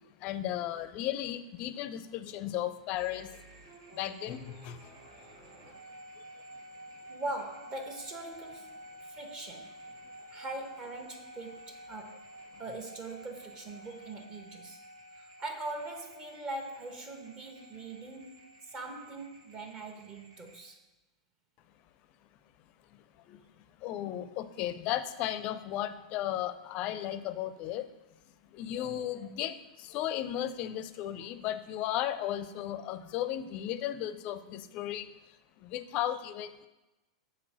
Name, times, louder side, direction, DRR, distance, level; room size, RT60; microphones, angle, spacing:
voice 1, 0.2-3.3 4.0-4.8 23.8-27.9 28.6-29.6 29.9-35.1 35.7-36.7, left 12 dB, 40° left, 13 dB, 0.5 m, -35 dB
sound 1, 2.9-20.6, right 1 dB, 65° right, 1.8 m, -51 dB
voice 2, 7.1-8.7 9.1-9.7 10.3-12.2 12.6-14.8 15.2-20.8, right 2 dB, 30° right, 4 dB, 1.1 m, -41 dB
6.1 x 4.2 x 6.3 m, 1.0 s
figure-of-eight pair, 95°, 3 cm